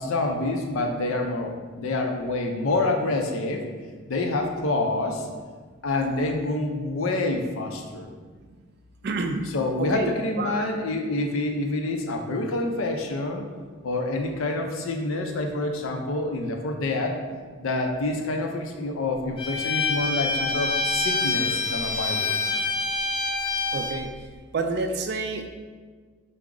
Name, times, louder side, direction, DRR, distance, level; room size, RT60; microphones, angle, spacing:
voice 1, 0.0-1.5 1.8-3.7 4.1-5.3 5.8-8.1 9.5-13.5 13.8-17.2 17.6-22.6, left 2 dB, 80° left, 3 dB, 0.5 m, -27 dB
voice 2, 5.9-6.3 9.0-9.4 9.8-10.1 10.4-10.7 23.7-24.1 24.5-25.5, right 3 dB, 50° right, 5 dB, 0.3 m, -29 dB
Bowed string instrument, 19.4-24.0, left 3 dB, 25° left, 0.5 m, -26 dB
4.6 x 2.0 x 3.7 m, 1.5 s
head